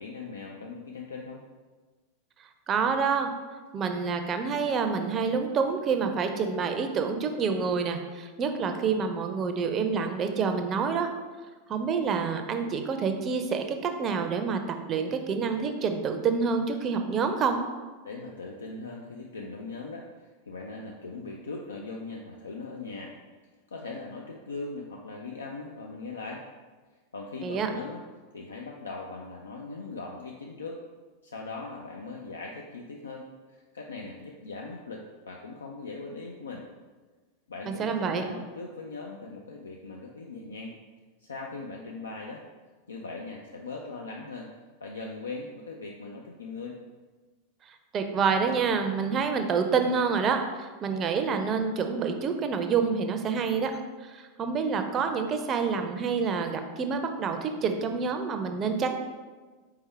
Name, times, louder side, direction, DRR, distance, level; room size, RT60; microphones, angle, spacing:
voice 1, 0.0-1.4 18.0-23.1 23.7-26.4 27.1-28.0 28.3-30.8 31.2-36.7 37.5-40.8 41.2-42.4 42.9-44.5 44.8-46.8, left 3 dB, 75° left, 0 dB, 0.4 m, -40 dB
voice 2, 2.7-3.3 3.7-11.1 11.7-14.6 14.9-17.6 27.4-27.7 37.7-38.2 47.7-53.7 54.0-59.0, right 5 dB, 30° right, 6 dB, 0.5 m, -27 dB
4.4 x 3.4 x 3.3 m, 1.3 s
figure-of-eight pair, 90°, 0 cm